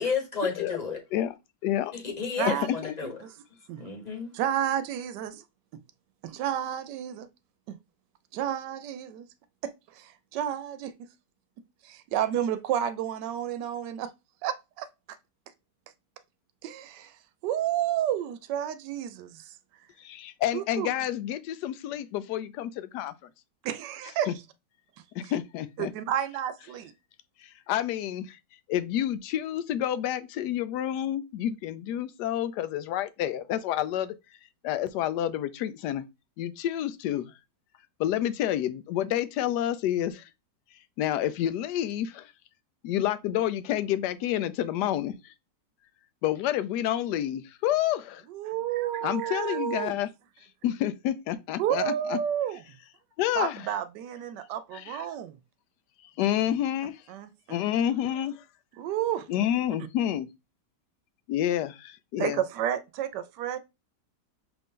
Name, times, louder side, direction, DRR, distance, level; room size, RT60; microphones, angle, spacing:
voice 1, 0.0-1.0 1.9-3.2 3.8-4.3, left 5 dB, 30° left, 1.0 m, -31 dB
voice 2, 1.6-1.9 2.6-2.9 20.0-23.1 25.1-25.9 27.4-28.4 28.7-34.1 34.6-36.0 36.4-37.3 38.0-40.2 41.0-42.3 42.8-45.3 46.2-48.2 49.0-50.1 50.6-52.2 53.2-53.7 54.7-55.0 56.2-57.0 57.5-58.4 59.3-60.3 61.3-62.4, left 11 dB, 75° left, 1.1 m, -29 dB
voice 3, 2.4-2.7 3.0-3.3 3.7-3.8 4.3-5.4 5.7-5.8 6.2-7.3 7.7-7.8 8.3-9.3 9.6-10.9 11.8-14.1 14.4-14.9 16.6-17.2 17.4-19.5 20.5-20.9 23.6-24.3 25.2-25.3 25.8-26.9 48.3-50.0 51.6-52.8 53.3-55.4 57.1-57.6 58.8-59.3 62.2-63.6, right 10 dB, 80° right, 1.2 m, -31 dB
5.7 x 2.6 x 3.6 m
omnidirectional pair, 1.8 m